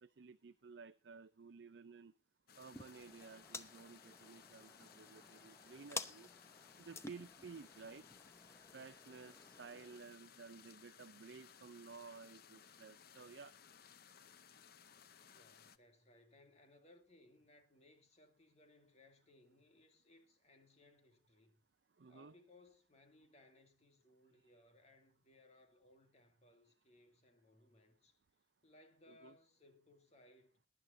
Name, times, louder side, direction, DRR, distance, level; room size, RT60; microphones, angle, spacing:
voice 1, 0.0-2.1 2.6-6.3 6.8-8.1 8.7-13.5 22.0-22.3 29.1-29.3, right 5 dB, 70° right, 0.6 m, -55 dB
sound 1, 2.5-15.8, left 7 dB, 60° left, 0.8 m, -62 dB
sound 2, 2.7-10.0, left 3 dB, 15° left, 0.8 m, -52 dB
voice 2, 15.3-21.6 22.1-28.2 28.6-30.6, left 2 dB, 40° left, 2.2 m, -66 dB
22.0 x 10.5 x 2.7 m
head